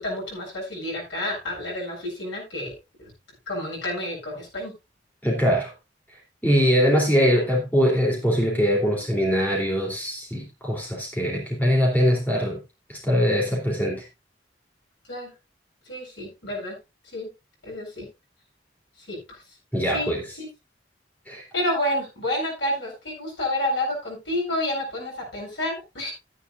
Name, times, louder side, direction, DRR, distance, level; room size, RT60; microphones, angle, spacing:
voice 1, 0.0-2.7 3.0-3.1 3.5-4.7 15.1-15.3 15.9-16.8 17.1-17.3 17.6-18.1 19.1-19.4 19.9-20.1 20.4-20.5 21.5-26.1, left 1 dB, 75° left, 7.6 m, -29 dB
voice 2, 5.2-5.7 6.4-12.6 12.9-14.0 19.7-20.2 21.3-21.4, equal, 10° left, 3.4 m, -22 dB
14.0 x 10.0 x 2.6 m
head